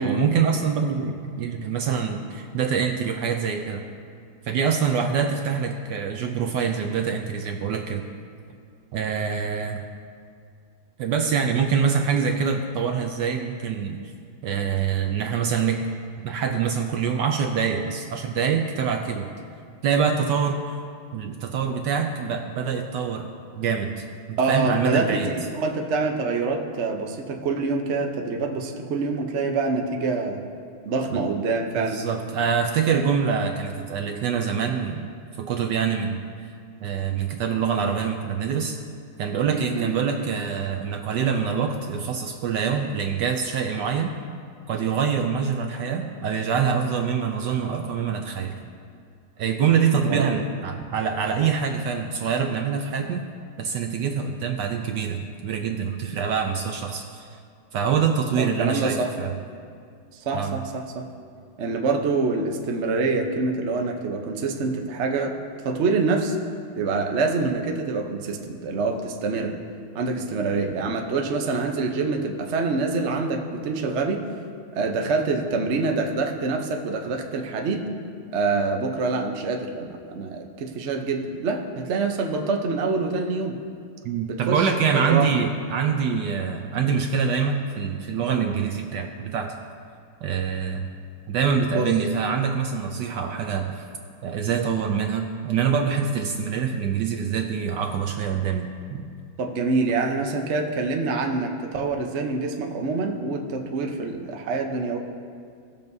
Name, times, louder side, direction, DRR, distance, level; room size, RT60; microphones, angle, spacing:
voice 1, 0.0-3.8 4.5-8.1 8.9-9.8 11.0-14.0 14.4-15.8 16.2-19.3 19.8-20.8 21.1-25.3 31.1-31.2 31.8-35.1 35.4-36.2 36.8-38.8 39.2-44.1 44.7-48.5 49.4-53.2 53.6-57.3 57.7-59.3 60.3-60.5 84.0-89.5 90.2-90.9 91.3-93.9 94.2-99.1, right 6 dB, 70° right, 4 dB, 1.1 m, -25 dB
voice 2, 24.4-30.5 30.8-32.0 39.7-39.9 50.0-50.3 58.3-59.1 60.2-61.1 61.6-65.4 65.6-66.4 66.8-69.6 69.9-74.2 74.7-77.9 78.3-83.6 84.3-85.3 91.7-91.9 99.4-105.0, right 3 dB, 55° right, 3 dB, 0.8 m, -26 dB
19.5 x 6.9 x 2.7 m, 2.3 s
omnidirectional pair, 2.2 m